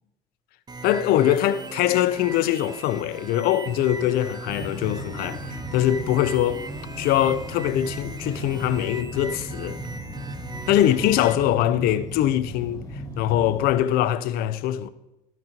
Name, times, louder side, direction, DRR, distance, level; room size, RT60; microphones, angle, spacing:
sound 1, 0.7-11.3, right 3 dB, 25° right, 0.8 m, -39 dB
voice 1, 0.8-6.7 7.0-9.8 10.7-12.8 13.2-14.9, left 12 dB, 65° left, 0.5 m, -22 dB
sound 2, 4.5-13.8, equal, 20° left, 1.7 m, -36 dB
13.5 x 6.0 x 2.9 m
hypercardioid pair, 70°, 17 cm